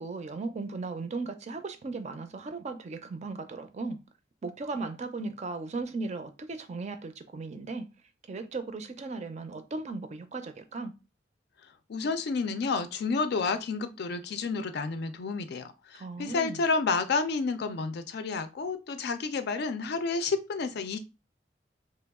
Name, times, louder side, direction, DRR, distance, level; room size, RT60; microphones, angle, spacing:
voice 1, 0.0-4.0 4.4-7.9 8.3-10.9 15.9-16.6, right 3 dB, 40° right, 0.4 m, -37 dB
voice 2, 11.9-21.0, left 4 dB, 65° left, 0.4 m, -30 dB
3.0 x 2.3 x 3.5 m
head